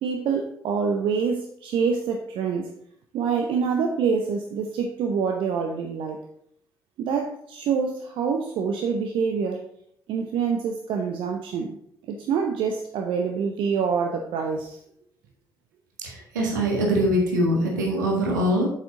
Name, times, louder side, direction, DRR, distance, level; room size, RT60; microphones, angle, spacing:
voice 1, 0.0-2.7 3.1-6.2 7.0-9.6 10.1-11.7 12.1-14.8, right 6 dB, 60° right, 3 dB, 0.8 m, -26 dB
voice 2, 16.0-18.7, equal, 80° right, 0 dB, 1.6 m, -23 dB
8.2 x 6.6 x 3.8 m, 0.69 s
figure-of-eight pair, 45°, 10 cm